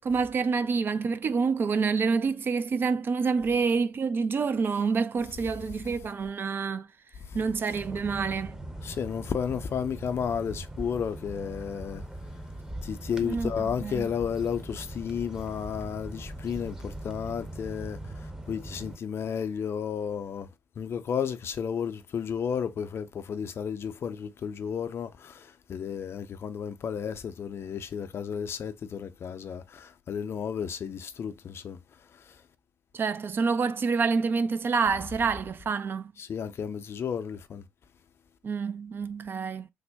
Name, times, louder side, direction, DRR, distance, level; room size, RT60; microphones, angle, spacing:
voice 1, 0.0-6.9 7.3-8.6 13.2-14.1 32.9-36.1 38.4-39.7, right 5 dB, 40° right, 0.4 m, -27 dB
sound 1, 7.7-19.0, right 1 dB, 10° right, 0.7 m, -41 dB
voice 2, 8.8-12.0 12.8-18.0 18.5-20.5 20.8-31.8 36.2-37.6, left 7 dB, 50° left, 0.5 m, -32 dB
3.4 x 2.1 x 3.4 m
hypercardioid pair, 45°, 5 cm